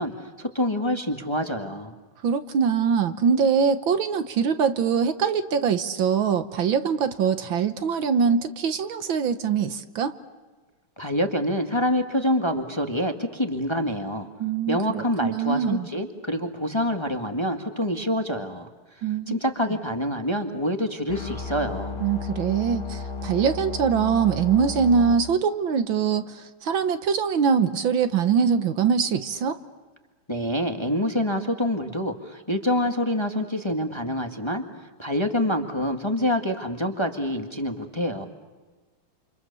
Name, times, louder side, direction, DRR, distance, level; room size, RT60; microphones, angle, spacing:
voice 1, 0.0-1.9 11.0-14.3 14.7-18.7 19.3-22.0 30.3-34.6 35.0-38.3, equal, 15° left, 5 dB, 1.6 m, -26 dB
voice 2, 2.2-10.1 14.4-15.9 19.0-19.4 22.0-29.6, right 6 dB, 65° right, 10 dB, 1.8 m, -23 dB
sound 1, 21.1-25.1, left 4 dB, 70° left, 2.7 m, -33 dB
29.0 x 28.0 x 6.9 m, 1.3 s
omnidirectional pair, 2.4 m